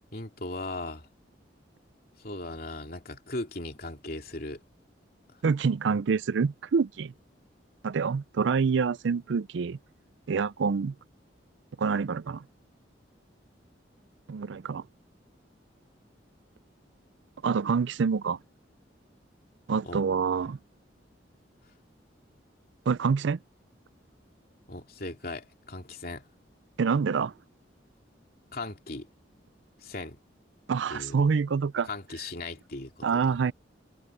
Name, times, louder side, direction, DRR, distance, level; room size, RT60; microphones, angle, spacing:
voice 1, 0.1-1.1 2.2-4.6 19.8-20.0 24.7-26.2 28.5-29.1 29.8-30.2 30.9-31.2 31.9-33.4, left 2 dB, 50° left, 2.9 m, -38 dB
voice 2, 5.4-7.1 7.8-9.8 10.3-10.9 11.8-12.4 14.3-14.8 17.4-18.4 19.7-20.6 22.9-23.4 26.8-27.3 30.7-31.9 33.0-33.5, right 5 dB, 80° right, 0.4 m, -26 dB
head